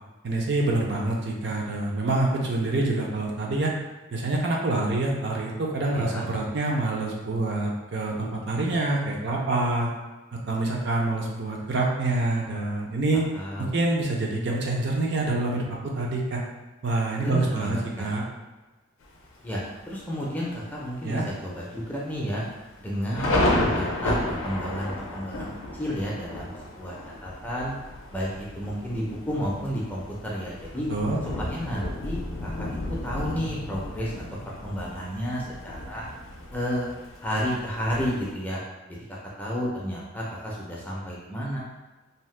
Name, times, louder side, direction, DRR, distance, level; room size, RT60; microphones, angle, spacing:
voice 1, 0.2-3.7 4.1-9.9 10.5-13.2 13.6-16.4 16.8-18.2 21.0-21.2 30.9-31.2, right 2 dB, 55° right, -1 dB, 0.5 m, -26 dB
voice 2, 5.9-6.3 13.1-13.8 17.2-18.1 19.4-22.4 22.8-25.5 25.8-26.5 26.8-27.0 27.2-27.7 28.1-30.9 31.5-36.1 36.5-36.9 37.2-38.6 38.9-39.0 39.4-41.6, equal, 10° left, -5 dB, 0.5 m, -31 dB
Thunder, 19.0-19.6 20.1-20.2 20.5-20.9 21.3-21.4 22.1-38.3, left 1 dB, 75° left, 0.4 m, -32 dB
2.7 x 2.1 x 3.2 m, 1.2 s
head